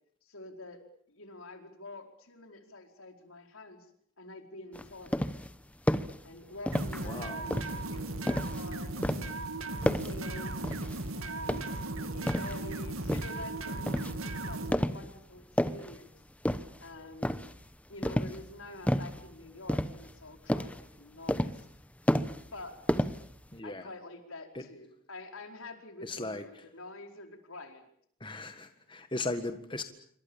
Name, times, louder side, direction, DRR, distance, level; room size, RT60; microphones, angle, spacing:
voice 1, 0.2-3.9 4.2-5.2 6.2-9.4 9.9-10.7 11.1-11.6 12.0-16.1 16.8-17.4 17.9-21.7 22.5-23.1 23.6-27.9, left 2 dB, 80° left, 5 dB, 4.7 m, -47 dB
sound 1, 4.7-5.5 5.9-6.2 6.7-7.1 7.5-8.7 9.0-9.4 9.8-10.2 10.6-11.0 11.4-12.6 13.1-13.4 13.9-14.2 14.7-15.1 15.4-16.0 16.4-16.9 17.2-17.6 18.0-18.5 18.9-19.2 19.7-20.2 20.5-20.8 21.3-21.8 22.1-22.6 22.9-23.5, equal, 5° left, 1.0 m, -31 dB
sound 2, 6.7-14.7, right 2 dB, 80° right, 2.4 m, -37 dB
voice 2, 7.0-7.5 23.5-23.9 24.5-24.7 26.0-26.7 28.2-29.8, left 2 dB, 25° left, 7 dB, 1.6 m, -37 dB
27.5 x 24.5 x 7.2 m, 0.65 s
head